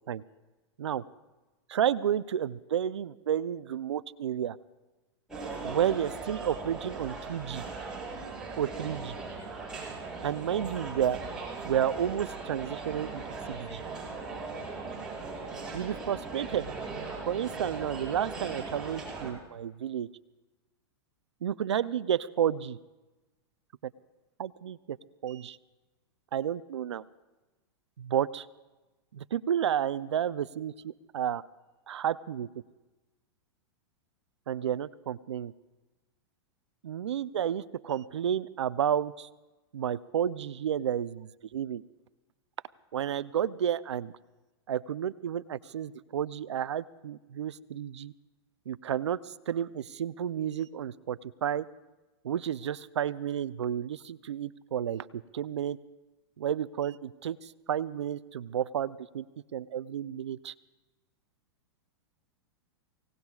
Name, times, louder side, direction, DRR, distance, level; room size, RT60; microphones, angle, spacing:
voice 1, 1.7-4.6 5.6-7.6 8.6-9.2 10.2-11.2 11.6-13.2 13.5-13.8 15.7-16.7 17.3-20.1 21.4-22.8 24.4-25.0 25.2-25.6 26.3-27.0 28.0-28.5 29.1-31.4 31.9-32.5 34.5-35.5 36.8-39.3 39.7-41.8 42.9-44.1 44.7-48.1 48.7-51.7 52.2-55.8 56.4-59.2 59.5-60.5, right 9 dB, 90° right, 16 dB, 0.5 m, -31 dB
sound 1, 5.3-19.3, right 4 dB, 5° right, 7.3 m, -39 dB
29.5 x 18.0 x 2.4 m, 1.1 s
hypercardioid pair, 120°, 14 cm